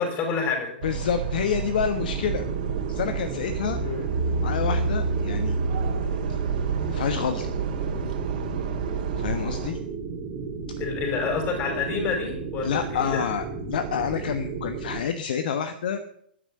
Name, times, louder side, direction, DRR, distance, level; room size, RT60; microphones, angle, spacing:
voice 1, 0.0-0.7 3.8-4.1 10.8-13.2, left 5 dB, 30° left, 4 dB, 5.9 m, -28 dB
voice 2, 0.8-2.5 2.9-3.8 4.4-5.6 6.9-7.5 9.1-9.8 12.6-16.0, left 7 dB, 55° left, 10 dB, 1.2 m, -28 dB
sound 1, 0.8-9.7, right 5 dB, 55° right, 3.2 m, -29 dB
sound 2, 1.9-15.0, right 4 dB, 30° right, 2.7 m, -34 dB
13.0 x 10.0 x 7.7 m, 0.71 s
figure-of-eight pair, 115°, 6 cm